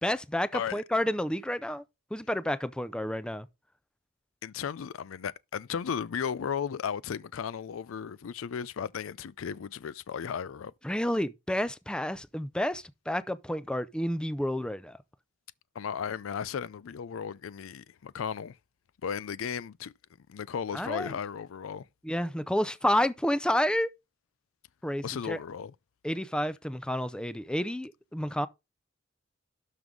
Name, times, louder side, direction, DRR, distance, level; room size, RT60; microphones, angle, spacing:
voice 1, 0.0-1.8 2.1-3.5 10.8-15.0 20.7-21.1 22.0-23.9 24.8-25.4 26.0-28.5, left 1 dB, 5° left, 0.4 m, -30 dB
voice 2, 0.5-0.8 4.4-10.7 15.8-18.6 19.0-19.9 20.3-21.9 25.0-25.7, left 7 dB, 90° left, 0.4 m, -35 dB
12.0 x 5.2 x 3.7 m
head